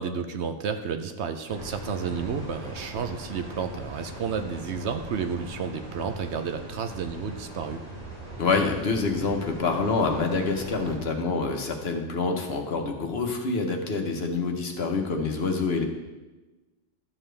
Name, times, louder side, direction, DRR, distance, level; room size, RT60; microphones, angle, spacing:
voice 1, 0.0-7.8, right 6 dB, 65° right, 7 dB, 0.9 m, -31 dB
sound 1, 1.5-11.0, right 1 dB, 35° right, 3.1 m, -40 dB
voice 2, 8.4-15.8, left 4 dB, 55° left, 3 dB, 1.2 m, -26 dB
12.0 x 7.1 x 3.3 m, 1.1 s
omnidirectional pair, 1.3 m